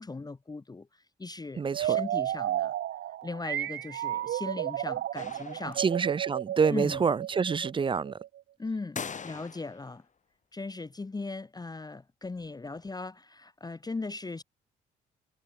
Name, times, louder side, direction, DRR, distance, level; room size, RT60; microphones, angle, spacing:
voice 1, 0.0-2.7 3.2-5.8 6.7-7.0 8.6-10.0 10.5-14.4, left 3 dB, 20° left, 0.8 m, -38 dB
voice 2, 1.6-2.0 5.8-8.2, right 5 dB, 25° right, 0.4 m, -27 dB
sound 1, 1.7-8.4, right 12 dB, 60° right, 0.7 m, -33 dB
sound 2, 5.2-6.1 9.0-10.0, left 6 dB, 35° left, 1.2 m, -41 dB
supercardioid pair, 60°, 21 cm